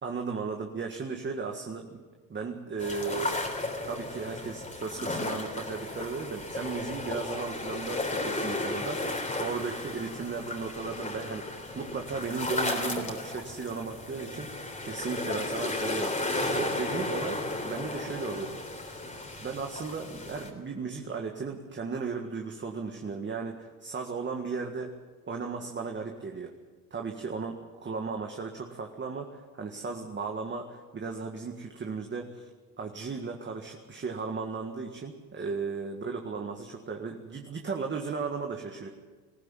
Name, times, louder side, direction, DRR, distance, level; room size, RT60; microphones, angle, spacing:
voice 1, 0.0-1.9 2.3-3.3 3.8-14.5 14.8-16.1 16.4-18.7 19.1-25.0 25.3-26.5 26.9-32.5 32.8-38.9, right 4 dB, 25° right, 3 dB, 1.9 m, -36 dB
sound 1, 2.8-20.5, left 2 dB, 15° left, 3.6 m, -34 dB
20.5 x 15.0 x 9.1 m, 1.4 s
supercardioid pair, 100°, 44 cm